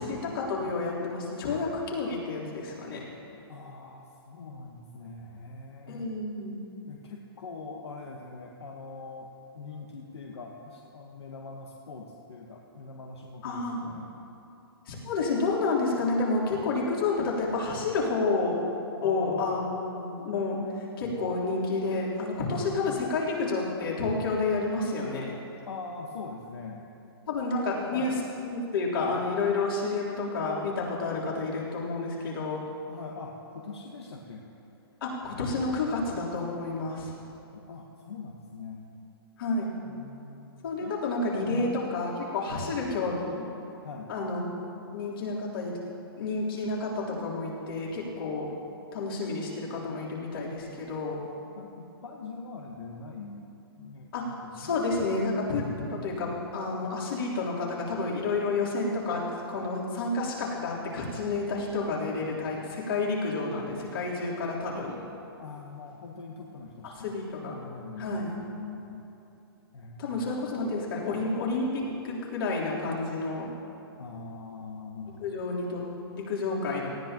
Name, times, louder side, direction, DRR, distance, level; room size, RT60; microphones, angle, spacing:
voice 1, 0.0-3.0 5.9-6.6 13.4-13.9 14.9-18.6 19.0-25.3 27.3-28.1 28.5-32.6 35.0-37.1 39.4-39.7 40.6-43.4 44.1-44.5 44.9-45.8 46.2-48.5 48.9-51.2 54.1-54.3 54.5-65.0 67.0-67.5 68.0-68.3 70.0-73.5 75.2-75.8 76.1-76.9, left 3 dB, 60° left, -5 dB, 3.6 m, -30 dB
voice 2, 3.5-6.2 6.9-14.1 19.0-19.6 22.9-23.1 25.7-26.9 27.9-28.2 32.9-34.5 37.5-38.9 39.8-41.0 41.5-41.7 42.6-42.7 43.8-44.1 51.6-54.7 65.4-67.1 67.4-69.1 69.7-70.3 74.0-75.3, left 4 dB, 85° left, 0 dB, 1.3 m, -43 dB
18.5 x 15.0 x 3.0 m, 2.9 s
hypercardioid pair, 150°, 14 cm